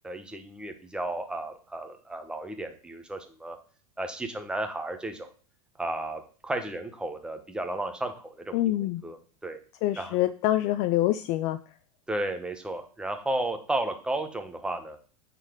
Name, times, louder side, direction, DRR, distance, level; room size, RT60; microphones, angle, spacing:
voice 1, 0.0-3.6 4.0-5.3 5.8-9.6 10.0-10.2 12.1-15.0, right 1 dB, 5° right, 6 dB, 1.0 m, -33 dB
voice 2, 8.5-9.0 9.8-11.6, left 14 dB, 40° left, 12 dB, 0.4 m, -25 dB
9.0 x 4.1 x 5.1 m, 0.40 s
supercardioid pair, 140°, 20 cm